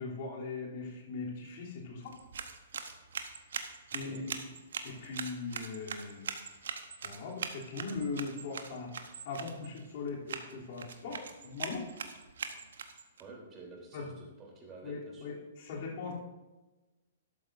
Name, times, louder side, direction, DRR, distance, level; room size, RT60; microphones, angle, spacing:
voice 1, 0.0-2.2 3.9-4.2 4.8-6.3 7.0-8.9 9.2-11.8 13.9-14.1 14.8-16.1, left 4 dB, 45° left, -3 dB, 3.1 m, -40 dB
sound 1, 2.0-13.2, right 6 dB, 60° right, 1.0 m, -42 dB
voice 2, 13.2-15.3, right 3 dB, 25° right, -1 dB, 3.4 m, -50 dB
12.5 x 12.0 x 2.6 m, 1.1 s
figure-of-eight pair, 115°, 0 cm